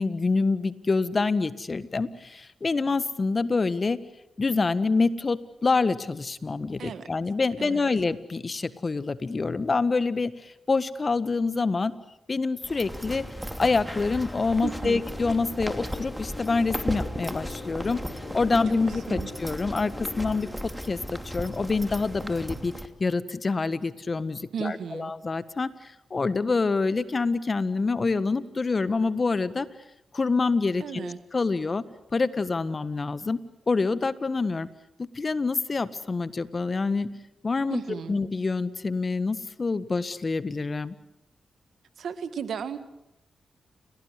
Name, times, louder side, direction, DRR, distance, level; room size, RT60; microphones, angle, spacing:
voice 1, 0.0-4.0 4.4-11.9 12.3-13.3 13.6-18.0 18.3-20.5 20.9-22.7 23.0-25.7 26.1-29.7 30.1-31.8 32.1-33.4 33.7-34.7 35.1-37.1 37.4-40.9, left 4 dB, 45° left, 15 dB, 1.5 m, -26 dB
voice 2, 7.6-7.9 14.6-15.0 18.5-18.6 19.1-19.3 24.5-25.1 30.8-31.2 37.7-38.2 42.0-42.8, right 7 dB, 80° right, 12 dB, 1.7 m, -34 dB
sound 1, 12.6-22.9, equal, 5° right, 3.1 m, -36 dB
sound 2, 14.9-20.2, left 4 dB, 60° left, 4.4 m, -42 dB
30.0 x 18.0 x 8.1 m, 0.83 s
supercardioid pair, 45°, 0 cm